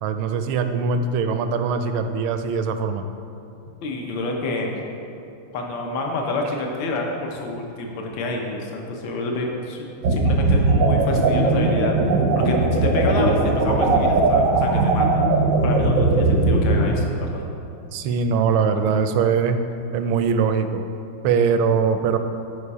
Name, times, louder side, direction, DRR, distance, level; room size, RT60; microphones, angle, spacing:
voice 1, 0.0-3.0 17.9-19.6 19.9-20.8 21.2-22.2, right 6 dB, 80° right, 8 dB, 1.4 m, -21 dB
voice 2, 3.8-4.9 5.5-12.0 12.3-15.2 15.6-17.4, left 2 dB, 65° left, 1 dB, 1.7 m, -28 dB
sound 1, 10.0-16.9, right 3 dB, 65° right, 0.8 m, -19 dB
9.8 x 5.2 x 4.8 m, 2.6 s
omnidirectional pair, 2.3 m